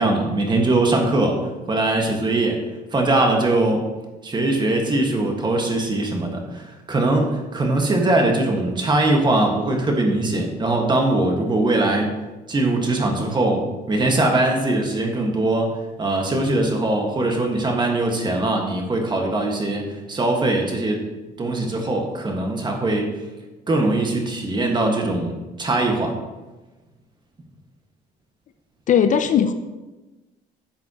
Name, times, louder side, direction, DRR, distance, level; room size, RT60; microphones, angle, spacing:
voice 1, 0.0-1.4 1.7-2.6 2.9-3.9 4.2-12.1 12.5-21.1 21.4-23.1 23.7-26.2, right 2 dB, 25° right, 2 dB, 1.7 m, -21 dB
voice 2, 28.9-29.5, left 8 dB, 50° left, 9 dB, 0.5 m, -17 dB
11.0 x 7.5 x 3.0 m, 1.1 s
cardioid pair, 110°, 17 cm